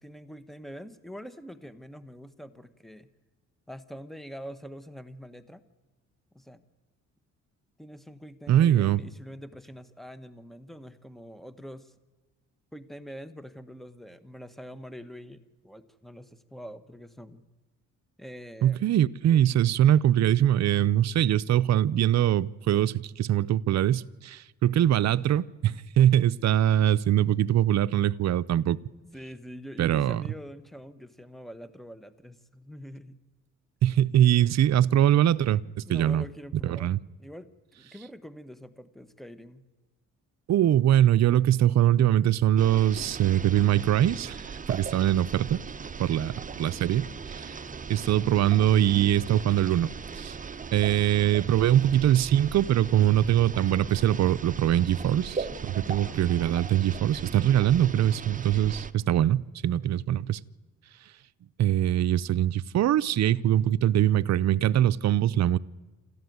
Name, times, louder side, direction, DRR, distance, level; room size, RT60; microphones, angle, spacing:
voice 1, 0.0-3.1 3.7-5.6 6.3-6.6 7.8-11.9 12.7-17.4 18.2-18.8 29.1-33.2 35.9-39.6 55.9-56.2, equal, ahead, 1.4 m, -44 dB
voice 2, 8.5-9.0 18.6-28.8 29.8-30.2 33.8-36.2 36.6-37.0 40.5-44.4 44.7-45.6 46.0-47.6 47.9-50.4 50.7-60.4 61.6-65.6, right 11 dB, 60° right, 0.7 m, -23 dB
sound 1, 42.6-58.9, right 5 dB, 25° right, 1.0 m, -38 dB
27.0 x 14.0 x 9.5 m
cardioid pair, 90°, 30 cm